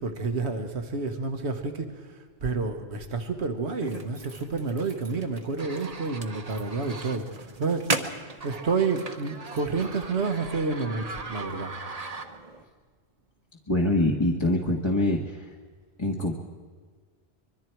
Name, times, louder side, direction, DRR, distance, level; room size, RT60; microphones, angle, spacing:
voice 1, 0.0-8.0 8.4-11.7, right 4 dB, 80° right, 5 dB, 1.7 m, -29 dB
sound 1, 3.8-12.6, right 3 dB, 35° right, 1.2 m, -37 dB
voice 2, 13.7-15.5 16.0-16.4, left 1 dB, 25° left, -2 dB, 1.5 m, -24 dB
25.0 x 23.0 x 4.6 m, 1.5 s
omnidirectional pair, 1.1 m